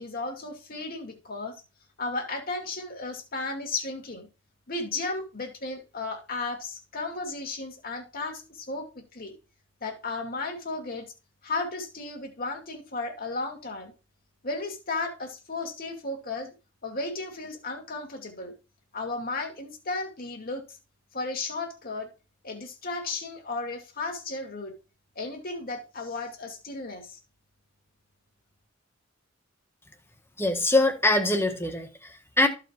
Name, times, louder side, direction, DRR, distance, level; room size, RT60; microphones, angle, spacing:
voice 1, 0.0-1.5 2.0-4.3 4.7-9.3 9.8-11.1 11.4-13.9 14.4-16.5 16.8-18.5 18.9-20.6 21.1-22.1 22.4-24.7 25.2-27.2, left 3 dB, 45° left, 2.4 m, -34 dB
voice 2, 30.4-32.5, left 2 dB, 10° left, 1.5 m, -23 dB
13.5 x 5.0 x 4.6 m
head